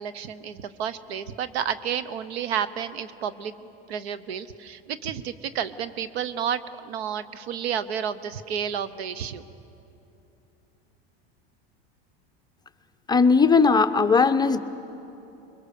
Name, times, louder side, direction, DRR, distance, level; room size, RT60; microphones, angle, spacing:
voice 1, 0.0-9.4, right 8 dB, 80° right, 14 dB, 1.1 m, -31 dB
voice 2, 13.1-14.6, left 4 dB, 15° left, 8 dB, 0.7 m, -18 dB
25.5 x 22.0 x 6.7 m, 2.9 s
supercardioid pair, 115°, 31 cm